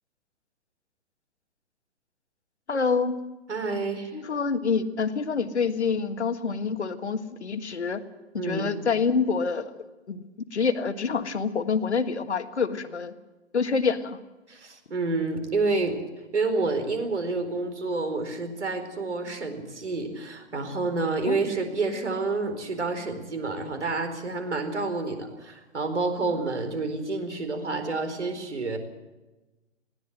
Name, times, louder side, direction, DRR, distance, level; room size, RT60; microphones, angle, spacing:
voice 1, 2.7-3.3 4.1-8.0 8.4-10.2 10.5-13.1 13.5-14.2 21.3-21.4, left 5 dB, 70° left, 9 dB, 1.7 m, -27 dB
voice 2, 3.5-4.2 8.4-8.7 14.5-16.0 16.3-28.8, right 3 dB, 70° right, 7 dB, 4.4 m, -29 dB
20.0 x 16.5 x 7.9 m, 1.1 s
figure-of-eight pair, 125°, 35 cm